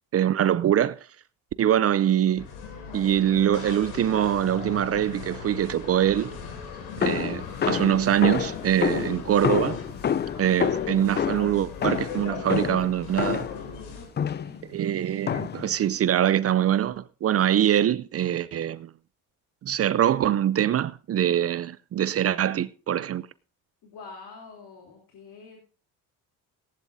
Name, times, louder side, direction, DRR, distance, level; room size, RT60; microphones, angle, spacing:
voice 1, 0.1-1.0 1.6-2.5 2.9-6.4 7.0-9.8 10.4-13.5 14.7-18.9 19.6-23.3, right 10 dB, 35° right, 0.5 m, -23 dB
sound 1, 2.4-14.1, left 6 dB, 90° left, 3.2 m, -38 dB
sound 2, 7.0-13.7 14.2-14.6 15.3-15.7, left 8 dB, 25° left, 0.5 m, -28 dB
voice 2, 13.9-14.6 23.8-25.6, left 4 dB, 60° left, 3.4 m, -46 dB
18.0 x 11.0 x 2.7 m
supercardioid pair, 85°, 40 cm